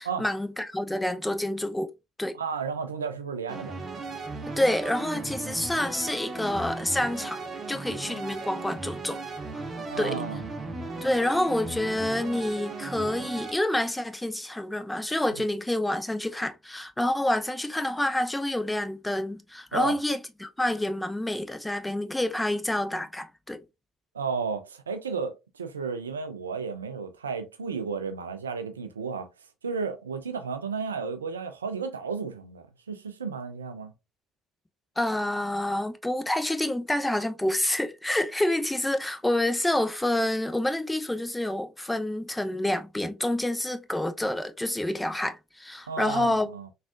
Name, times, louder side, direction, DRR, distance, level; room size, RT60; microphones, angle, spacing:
voice 1, 0.0-1.9 2.2-2.4 4.6-7.4 7.7-9.2 9.5-9.6 10.0-10.2 11.0-23.6 35.0-46.5, left 1 dB, 10° left, 0.5 m, -28 dB
voice 2, 2.3-3.8 9.9-10.5 19.7-20.0 24.1-29.3 29.6-33.9 45.9-46.7, right 5 dB, 90° right, 0.3 m, -33 dB
sound 1, 3.5-13.6, right 3 dB, 35° right, 0.7 m, -36 dB
3.5 x 2.4 x 2.4 m
hypercardioid pair, 55°, 0 cm